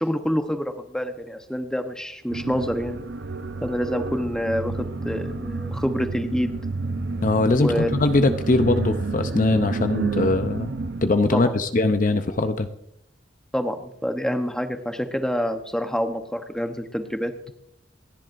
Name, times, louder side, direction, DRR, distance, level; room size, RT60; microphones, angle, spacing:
voice 1, 0.0-3.0 3.6-6.5 7.6-7.9 11.3-11.5 13.5-17.3, equal, 5° left, 6 dB, 0.9 m, -27 dB
sound 1, 2.3-11.1, right 3 dB, 70° right, 0.8 m, -30 dB
voice 2, 7.2-10.7 11.0-12.7, left 2 dB, 45° left, 9 dB, 0.7 m, -21 dB
28.0 x 10.5 x 2.6 m, 0.75 s
head